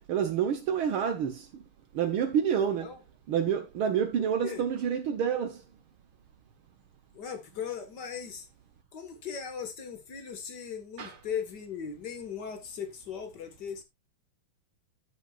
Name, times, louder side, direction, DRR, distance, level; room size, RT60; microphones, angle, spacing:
voice 1, 0.1-1.6 1.9-2.9 3.3-5.6 11.0-11.1, right 8 dB, 85° right, 1.1 m, -28 dB
voice 2, 2.7-3.0 4.2-4.7 7.1-8.5 8.9-13.8, left 7 dB, 45° left, 1.4 m, -38 dB
13.5 x 7.4 x 2.4 m
omnidirectional pair, 3.7 m